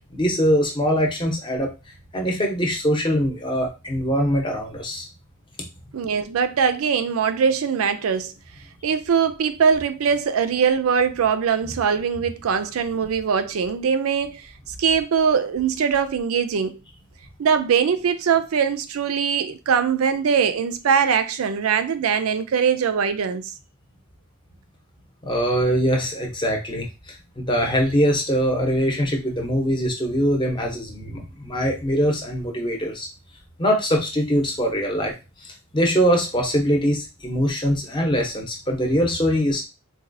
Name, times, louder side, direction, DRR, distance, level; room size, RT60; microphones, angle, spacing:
voice 1, 0.0-1.7 2.1-5.1 25.2-33.1 33.6-35.1 35.4-39.6, equal, 20° left, 0.7 m, -22 dB
voice 2, 5.9-8.3 8.8-14.5 14.8-16.8 17.4-23.5, right 6 dB, 80° right, 0.4 m, -21 dB
4.0 x 2.3 x 2.6 m
head